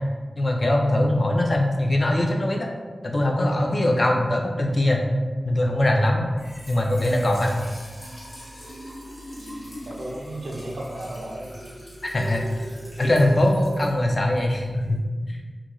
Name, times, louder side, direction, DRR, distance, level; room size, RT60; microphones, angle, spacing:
voice 1, 0.4-2.7 3.0-5.0 5.4-6.3 6.7-7.5 12.0-12.7 13.0-15.0 15.3-15.4, left 1 dB, 45° left, 1 dB, 0.3 m, -21 dB
Trickle dribble / Fill (with liquid), 6.2-15.0, equal, 70° left, 1.1 m, -40 dB
voice 2, 9.4-11.5, right 1 dB, 70° right, -1 dB, 0.4 m, -35 dB
2.4 x 2.2 x 2.9 m, 1.4 s
wide cardioid pair, 90°, 0 cm